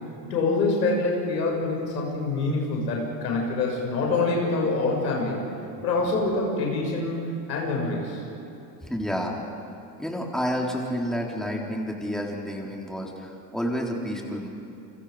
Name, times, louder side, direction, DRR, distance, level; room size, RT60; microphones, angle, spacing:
voice 1, 0.2-5.4 5.8-7.2 7.5-8.2, left 3 dB, 90° left, -1 dB, 6.8 m, -25 dB
voice 2, 8.8-9.5 10.0-14.5, equal, ahead, -1 dB, 4.1 m, -30 dB
29.5 x 24.5 x 5.2 m, 2.9 s
hypercardioid pair, 85°, 50 cm